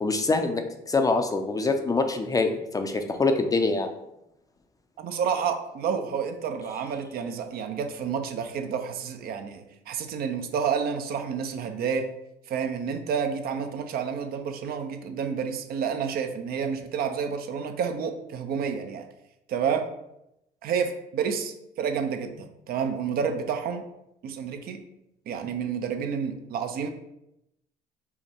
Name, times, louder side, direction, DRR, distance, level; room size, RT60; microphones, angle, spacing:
voice 1, 0.0-3.9, left 3 dB, 20° left, 6 dB, 0.5 m, -25 dB
voice 2, 5.0-12.1 12.5-19.1 19.5-19.8 20.6-23.8 24.2-24.8 25.3-26.9, right 6 dB, 65° right, 7 dB, 0.6 m, -29 dB
5.6 x 2.1 x 4.3 m, 0.84 s
cardioid pair, 110°, 17 cm